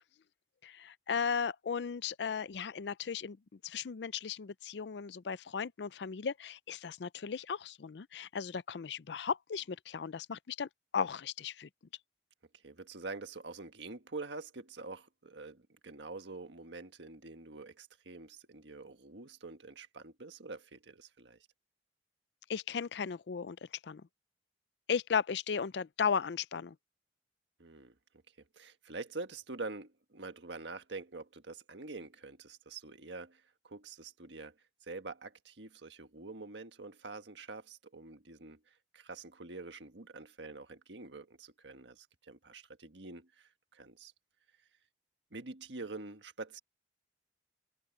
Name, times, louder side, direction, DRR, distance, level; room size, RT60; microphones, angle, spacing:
voice 1, 0.6-3.4 3.6-10.7 10.9-11.7 22.5-23.6 23.8-24.0 24.9-26.7, left 6 dB, 75° left, 0.5 m, -36 dB
voice 2, 12.6-21.5 27.6-27.9 28.5-34.6 34.8-44.1 45.3-46.6, right 3 dB, 90° right, 1.5 m, -46 dB
head